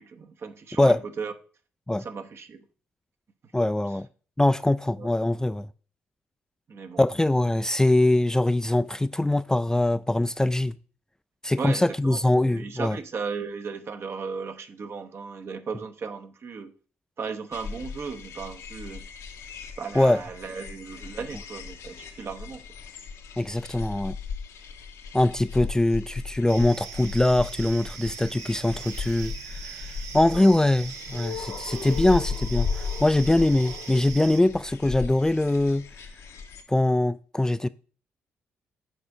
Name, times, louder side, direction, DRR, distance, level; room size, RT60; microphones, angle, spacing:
voice 1, 0.0-1.3 2.0-2.6 5.0-5.1 6.7-7.0 11.6-16.7 17.2-19.1 19.8-22.6 30.3-30.6, right 5 dB, 50° right, 0.9 m, -36 dB
voice 2, 3.5-4.1 4.4-5.7 7.0-10.7 11.4-13.0 19.9-20.2 23.4-24.2 25.1-29.9 30.1-35.8 36.7-37.7, left 1 dB, 10° left, 0.3 m, -23 dB
sound 1, 17.5-36.6, left 5 dB, 65° left, 0.8 m, -36 dB
sound 2, 26.5-34.4, right 7 dB, 75° right, 0.7 m, -41 dB
7.4 x 4.3 x 4.8 m
hypercardioid pair, 45°, 5 cm